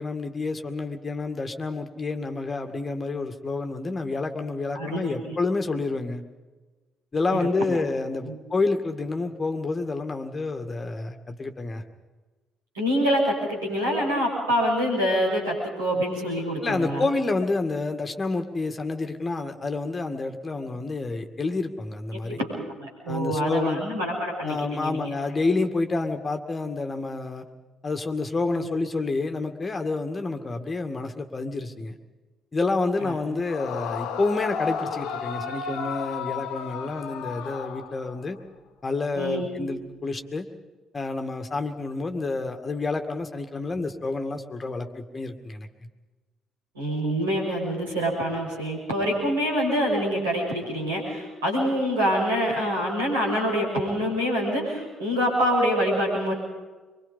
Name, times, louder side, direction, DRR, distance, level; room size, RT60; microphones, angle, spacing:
voice 1, 0.0-6.2 7.1-11.8 16.6-22.4 23.1-23.8 24.4-27.4 27.8-32.0 32.5-38.4 38.8-40.5 40.9-45.7, left 3 dB, 30° left, 6 dB, 2.1 m, -29 dB
voice 2, 4.7-5.3 7.4-7.8 8.2-8.4 12.7-17.1 22.4-22.5 22.8-25.1 28.5-28.7 33.0-33.4 39.1-39.5 46.7-56.3, equal, 75° right, -3 dB, 6.0 m, -26 dB
Yell / Screaming, 33.5-38.4, left 6 dB, 60° left, 1.1 m, -33 dB
24.0 x 24.0 x 5.4 m, 1.2 s
figure-of-eight pair, 45°, 0 cm